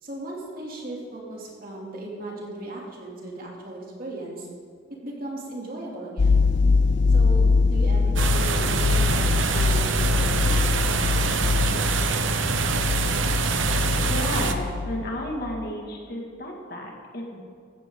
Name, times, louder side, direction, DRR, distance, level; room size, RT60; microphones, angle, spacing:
voice 1, 0.0-4.5 5.0-6.4 7.1-10.7, right 2 dB, 50° right, -2 dB, 2.8 m, -37 dB
sound 1, 6.2-15.2 15.4-15.7, left 4 dB, 70° left, 0.6 m, -23 dB
sound 2, 8.2-14.5, right 4 dB, 85° right, 0.9 m, -25 dB
voice 2, 14.0-17.4, left 1 dB, 50° left, 0 dB, 2.2 m, -33 dB
15.0 x 14.0 x 3.9 m, 2.1 s
head